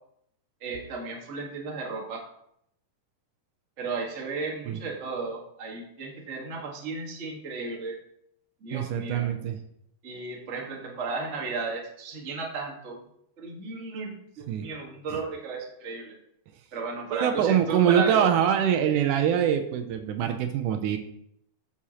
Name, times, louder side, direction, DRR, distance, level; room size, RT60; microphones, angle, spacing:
voice 1, 0.6-2.2 3.8-8.0 8.6-9.3 10.0-13.0 13.4-16.1 16.7-18.3, right 4 dB, 35° right, -1 dB, 1.2 m, -34 dB
voice 2, 8.7-9.6 14.5-14.7 17.1-21.0, right 9 dB, 80° right, 6 dB, 2.1 m, -24 dB
9.4 x 7.1 x 2.9 m, 0.74 s
omnidirectional pair, 3.8 m